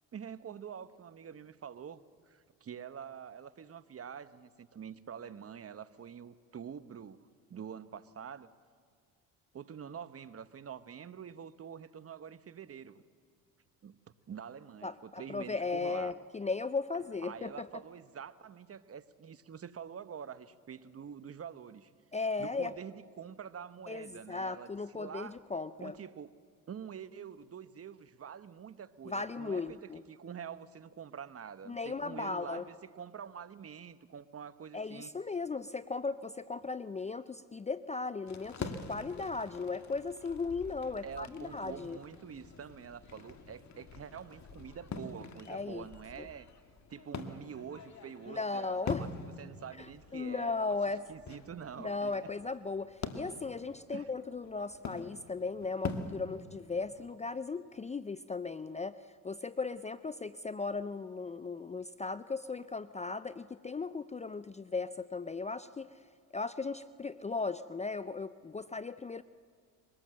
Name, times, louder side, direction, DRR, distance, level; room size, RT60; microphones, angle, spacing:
voice 1, 0.1-8.5 9.5-13.0 13.8-14.0 14.3-16.2 17.2-21.9 22.4-25.4 25.8-26.3 26.7-35.1 41.0-46.5 46.9-50.8 51.1-52.3 53.9-54.1, right 7 dB, 35° right, 15 dB, 0.9 m, -46 dB
voice 2, 14.8-17.7 22.1-22.7 23.9-25.9 29.1-30.0 31.7-32.7 34.7-42.0 45.5-45.8 46.2-46.3 48.3-49.1 49.8-49.9 50.1-51.0 51.8-59.0 59.2-65.9 66.3-69.2, left 4 dB, 15° left, 15 dB, 0.5 m, -37 dB
sound 1, 38.3-57.1, left 4 dB, 45° left, 1.9 m, -45 dB
23.0 x 18.5 x 7.6 m, 2.1 s
supercardioid pair, 70°, 40 cm